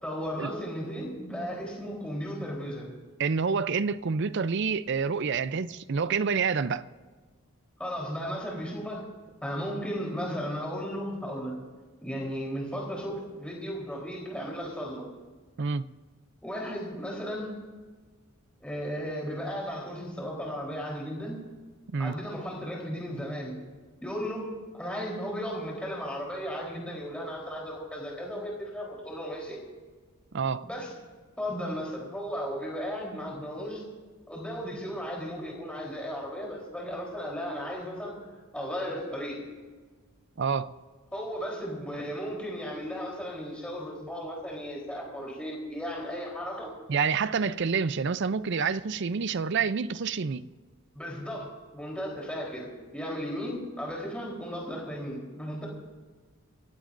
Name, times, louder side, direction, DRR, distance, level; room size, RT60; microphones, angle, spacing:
voice 1, 0.0-2.9 7.8-9.1 9.4-11.6 12.0-15.1 16.4-17.6 18.6-21.5 22.0-23.6 24.0-29.6 30.6-30.9 31.4-33.8 34.3-38.2 38.5-39.4 41.1-46.7 50.9-55.7, equal, 5° left, 3.7 m, -35 dB
voice 2, 3.2-6.8 15.6-15.9 21.9-22.2 30.3-30.7 40.4-40.7 46.9-50.5, right 5 dB, 55° right, 0.5 m, -28 dB
28.5 x 15.5 x 2.6 m
head